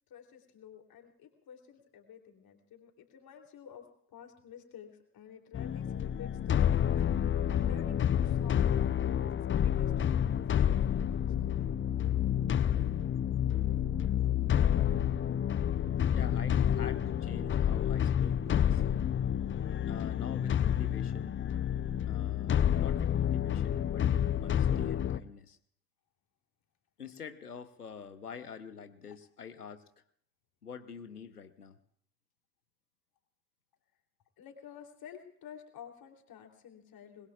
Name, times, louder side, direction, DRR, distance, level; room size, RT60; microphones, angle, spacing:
voice 1, 0.1-7.0 7.5-11.5 29.1-29.2 34.4-37.3, left 8 dB, 50° left, 2 dB, 3.3 m, -51 dB
sound 1, 5.5-25.2, left 9 dB, 25° left, 0.6 m, -29 dB
voice 2, 16.1-19.0 19.9-21.4 22.1-25.6 27.0-29.8 30.6-31.8, left 6 dB, 90° left, 11 dB, 0.9 m, -46 dB
28.0 x 21.5 x 2.4 m, 0.65 s
figure-of-eight pair, 45°, 45 cm